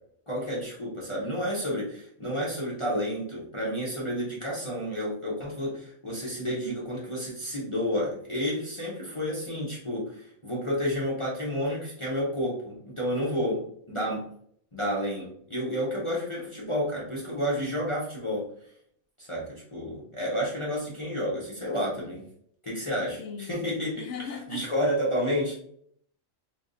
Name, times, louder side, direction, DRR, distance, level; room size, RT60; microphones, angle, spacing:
voice 1, 0.3-14.3 14.7-18.5 19.2-22.2 22.6-24.1 24.5-25.5, equal, 25° left, 0.7 m, -30 dB
voice 2, 23.2-23.6 24.0-24.7, left 6 dB, 65° left, 0.8 m, -38 dB
3.4 x 3.0 x 2.6 m
omnidirectional pair, 1.5 m